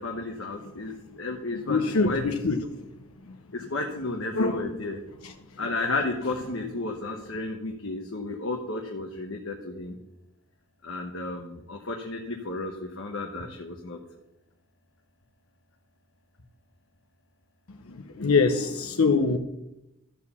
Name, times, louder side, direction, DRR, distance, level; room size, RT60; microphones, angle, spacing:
voice 1, 0.0-1.8 2.0-2.2 2.5-2.7 3.5-5.0 5.6-10.0 10.8-14.0, left 2 dB, 65° left, 2 dB, 1.1 m, -32 dB
voice 2, 1.7-2.6 4.3-4.7 5.2-5.3 17.9-19.4, left 4 dB, 90° left, 5 dB, 0.8 m, -24 dB
13.0 x 4.7 x 7.0 m, 0.92 s
head